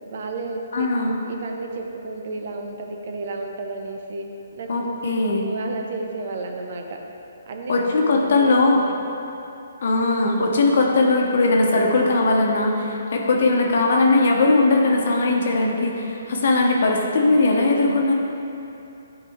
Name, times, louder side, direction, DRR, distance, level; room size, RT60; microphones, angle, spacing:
voice 1, 0.1-0.9 1.3-4.3 4.5-4.7 5.2-7.0 7.5-8.6 8.9-9.1, right 3 dB, 55° right, 3 dB, 0.8 m, -32 dB
voice 2, 0.7-1.1 4.7-5.4 7.7-8.8 9.8-18.1, left 2 dB, 60° left, 0 dB, 1.1 m, -19 dB
10.5 x 4.2 x 3.6 m, 2.8 s
figure-of-eight pair, 135°, 0 cm